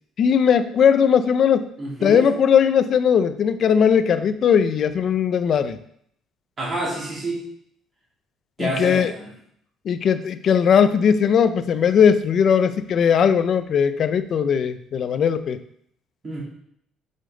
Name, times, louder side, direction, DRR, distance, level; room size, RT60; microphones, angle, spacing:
voice 1, 0.2-1.7 2.0-5.8 8.6-9.1 9.9-15.6, left 7 dB, 40° left, 12 dB, 0.4 m, -18 dB
voice 2, 1.8-2.2 6.6-7.4 8.6-9.3 16.2-16.4, right 2 dB, 20° right, -6 dB, 2.7 m, -28 dB
7.6 x 5.1 x 3.9 m, 0.69 s
cardioid pair, 175°, 0 cm